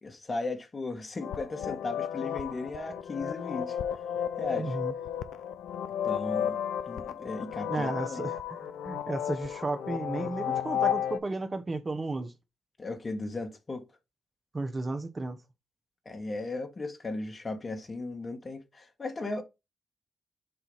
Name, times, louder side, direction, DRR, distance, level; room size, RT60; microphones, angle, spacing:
voice 1, 0.0-3.8 4.4-4.8 6.0-6.6 6.8-8.2 12.8-13.8 16.0-19.4, left 2 dB, 40° left, 1.7 m, -36 dB
sound 1, 1.2-11.2, left 9 dB, 80° left, 0.4 m, -33 dB
voice 2, 4.6-4.9 7.7-12.3 14.5-15.4, right 2 dB, 40° right, 1.1 m, -34 dB
6.8 x 2.8 x 5.5 m
supercardioid pair, 45°, 0 cm